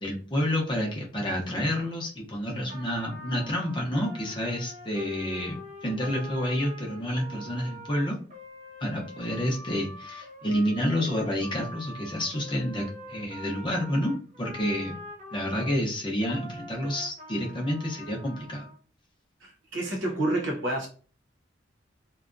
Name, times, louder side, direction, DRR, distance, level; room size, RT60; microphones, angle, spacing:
voice 1, 0.0-5.6 5.8-8.2 8.8-14.9 15.3-18.6, equal, 25° left, 0.6 m, -29 dB
Trumpet, 2.7-15.8 16.2-18.8, left 1 dB, 40° right, 0.5 m, -44 dB
voice 2, 19.4-20.9, right 1 dB, 80° right, 0.9 m, -29 dB
2.6 x 2.2 x 2.5 m
head